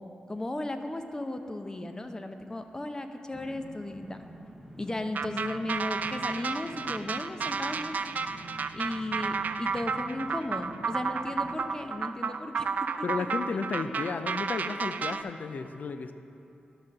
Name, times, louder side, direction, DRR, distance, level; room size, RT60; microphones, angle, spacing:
voice 1, 0.3-4.2 4.8-8.0 8.7-12.7 13.0-13.1, left 1 dB, 20° left, 7 dB, 0.7 m, -35 dB
sound 1, 3.3-11.6, right 1 dB, ahead, 1.0 m, -48 dB
sound 2, 5.1-15.2, right 5 dB, 60° right, 0.3 m, -32 dB
voice 2, 13.0-16.1, left 4 dB, 60° left, 10 dB, 0.5 m, -33 dB
12.0 x 4.2 x 6.5 m, 2.7 s
cardioid pair, 65°, 3 cm